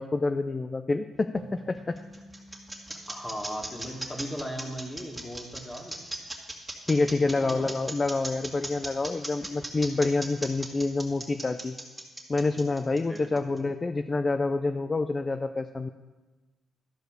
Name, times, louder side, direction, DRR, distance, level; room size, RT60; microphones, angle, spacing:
voice 1, 0.0-2.0 6.9-11.8 12.3-15.9, left 3 dB, 25° left, 8 dB, 0.4 m, -27 dB
sound 1, 1.4-4.8, right 1 dB, 70° right, 1.3 m, -49 dB
sound 2, 1.5-13.6, right 1 dB, 10° right, 2.0 m, -38 dB
voice 2, 2.9-6.0 7.3-7.7 13.1-13.5, equal, 10° left, 1 dB, 1.9 m, -38 dB
12.5 x 4.8 x 6.4 m, 1.2 s
cardioid pair, 90°, 0 cm